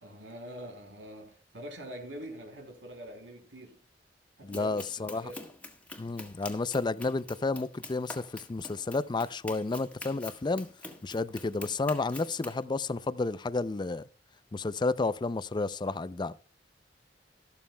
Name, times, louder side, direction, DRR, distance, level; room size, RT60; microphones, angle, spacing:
voice 1, 0.0-3.8 4.4-5.4, equal, 85° right, 3.0 m, -45 dB
voice 2, 4.4-5.3 6.0-10.7 11.0-14.1 14.5-16.3, left 3 dB, 25° left, 0.4 m, -31 dB
Run, 4.5-12.6, left 2 dB, 10° left, 1.6 m, -46 dB
13.5 x 12.5 x 2.2 m
head